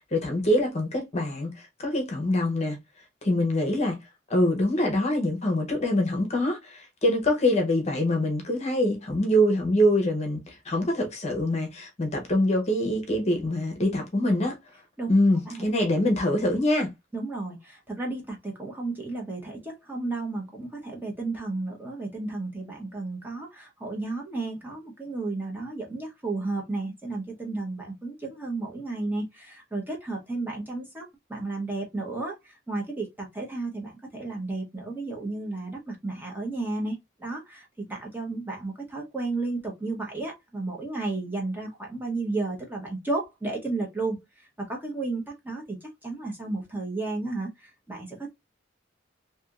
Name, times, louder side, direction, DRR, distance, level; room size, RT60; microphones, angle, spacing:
voice 1, 0.1-2.8 3.2-4.0 4.3-14.6 15.1-16.9, left 1 dB, 35° left, 0.8 m, -24 dB
voice 2, 17.1-48.3, right 3 dB, 10° right, 0.9 m, -33 dB
3.4 x 2.7 x 2.3 m
head